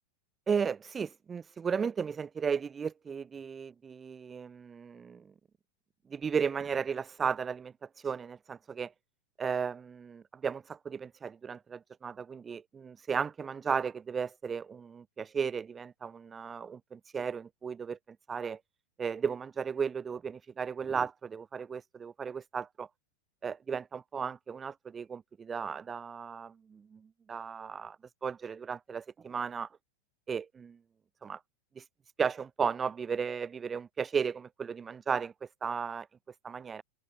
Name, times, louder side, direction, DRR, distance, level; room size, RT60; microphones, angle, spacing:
voice 1, 0.5-5.3 6.1-7.7 8.0-8.9 9.4-18.6 19.0-22.9 23.4-28.0 28.2-29.7 30.3-30.8 31.2-31.4 31.7-31.8 32.2-35.3 35.6-36.1 36.4-36.8, right 6 dB, 20° right, 1.4 m, -35 dB
open air
figure-of-eight pair, 90°, 0 cm